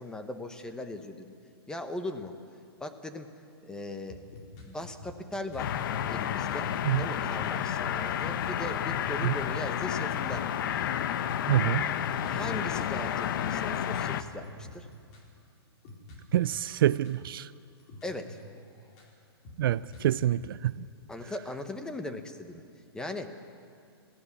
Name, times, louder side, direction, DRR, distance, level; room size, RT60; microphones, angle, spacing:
voice 1, 0.0-1.3 1.7-2.3 2.8-3.3 3.6-4.2 4.7-5.8 6.1-6.7 7.0-10.5 12.3-14.9 18.0-18.4 21.1-22.6 22.9-23.3, left 1 dB, 5° left, 1.0 m, -39 dB
sound 1, 4.1-7.7 8.2-15.4 15.8-17.5 17.8-19.2 19.4-20.7, left 3 dB, 35° left, 4.5 m, -47 dB
sound 2, 5.6-14.2, left 9 dB, 55° left, 0.9 m, -31 dB
voice 2, 11.5-11.9 16.3-17.5 19.6-20.9, right 12 dB, 55° right, 0.4 m, -26 dB
20.5 x 15.0 x 8.5 m
hypercardioid pair, 145°, 14 cm